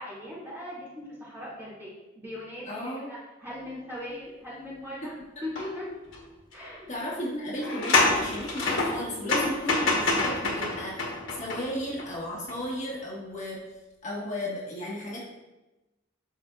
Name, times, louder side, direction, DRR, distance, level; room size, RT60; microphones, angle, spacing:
voice 1, 0.0-5.1 5.4-5.9 6.5-7.0, left 1 dB, 10° right, -9 dB, 2.2 m, -39 dB
voice 2, 2.7-3.1 6.9-13.6 14.0-15.2, equal, 35° left, -5 dB, 1.2 m, -34 dB
sound 1, 5.6-5.7 6.1-6.2 7.5-12.1 12.5-12.6, left 2 dB, 65° left, 1.2 m, -27 dB
11.5 x 4.2 x 2.3 m, 1.1 s
head